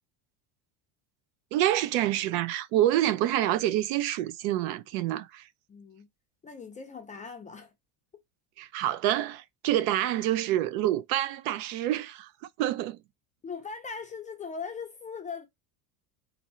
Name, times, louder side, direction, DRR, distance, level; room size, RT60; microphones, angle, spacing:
voice 1, 1.5-5.5 8.6-12.3 12.6-13.0, right 13 dB, 75° right, 0.8 m, -27 dB
voice 2, 5.7-6.1 6.4-7.7 13.4-15.5, left 5 dB, 15° left, 0.4 m, -39 dB
4.4 x 2.6 x 4.3 m
cardioid pair, 150°, 49 cm